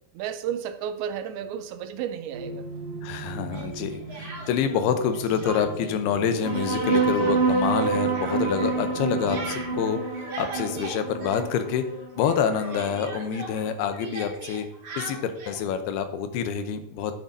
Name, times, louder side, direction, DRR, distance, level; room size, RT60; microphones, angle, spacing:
voice 1, 0.1-2.7 8.3-8.7, right 9 dB, 80° right, 9 dB, 2.4 m, -33 dB
sound 1, 2.3-9.9, right 3 dB, 65° right, 1.5 m, -40 dB
voice 2, 3.0-11.9 12.2-14.7 15.0-17.1, left 7 dB, 80° left, 8 dB, 2.7 m, -27 dB
Speech, 3.5-4.8 5.1-6.0 6.2-11.9 12.2-15.6, right 3 dB, 45° right, 2.0 m, -40 dB
sound 2, 6.4-13.4, right 4 dB, 20° right, 1.1 m, -27 dB
10.5 x 9.1 x 2.7 m, 0.74 s
omnidirectional pair, 4.6 m